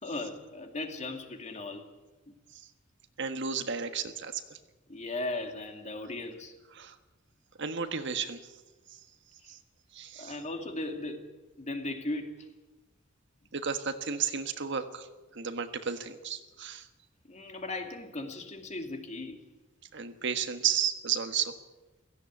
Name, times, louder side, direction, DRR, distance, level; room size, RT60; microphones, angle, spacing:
voice 1, 0.0-1.9 4.9-6.5 10.2-11.2 11.6-12.5 17.3-19.4, left 2 dB, 35° left, 5 dB, 2.4 m, -37 dB
voice 2, 3.2-4.6 6.7-7.0 7.6-8.5 8.9-9.0 9.5-9.6 9.9-10.4 13.5-15.1 15.3-16.9 19.9-21.5, right 7 dB, 60° right, 8 dB, 1.5 m, -33 dB
16.5 x 16.0 x 9.6 m, 1.1 s
head